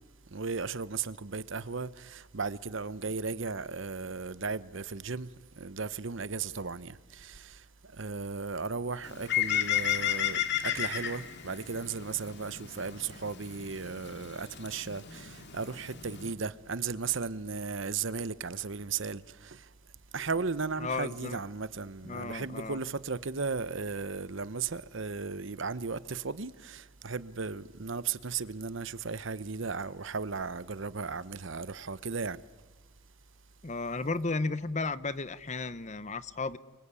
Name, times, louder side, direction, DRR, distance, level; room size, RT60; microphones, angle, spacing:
voice 1, 0.3-19.7 20.1-32.4, right 4 dB, 60° right, 0.9 m, -36 dB
Bird, 9.0-16.3, left 11 dB, 55° left, 2.6 m, -34 dB
voice 2, 20.8-21.4 22.0-22.8 33.6-36.6, left 3 dB, 35° left, 0.8 m, -34 dB
29.5 x 24.0 x 8.4 m
head